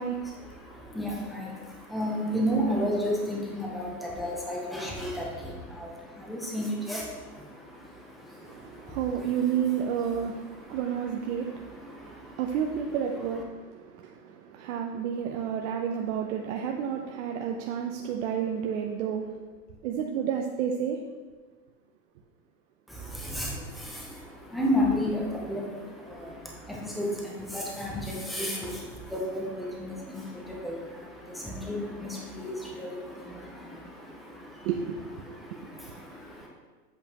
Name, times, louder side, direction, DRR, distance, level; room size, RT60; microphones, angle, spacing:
voice 1, 0.2-12.5 22.9-34.7 35.2-36.5, equal, ahead, -3 dB, 0.4 m, -33 dB
voice 2, 8.5-19.2 19.8-21.0 34.6-35.0 35.3-35.4, right 8 dB, 50° right, 2 dB, 0.6 m, -31 dB
7.9 x 5.0 x 2.8 m, 1.3 s
hypercardioid pair, 130°, 48 cm